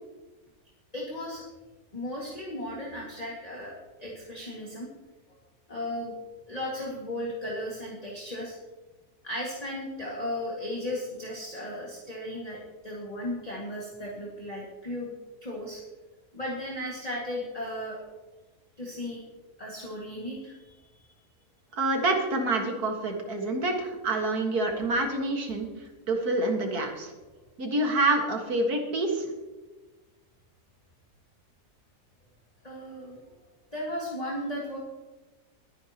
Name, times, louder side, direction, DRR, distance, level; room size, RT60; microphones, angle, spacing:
voice 1, 0.9-1.4 1.9-3.7 4.0-4.9 5.7-6.1 6.5-8.6 9.2-15.2 15.4-15.8 16.3-18.0 18.8-19.2 19.6-21.1 32.6-33.2 33.7-34.8, left 1 dB, 25° left, -4 dB, 2.0 m, -35 dB
voice 2, 21.7-25.7 26.1-27.1 27.6-29.3, right 2 dB, 65° right, 2 dB, 2.2 m, -27 dB
22.0 x 9.4 x 2.9 m, 1.2 s
omnidirectional pair, 1.7 m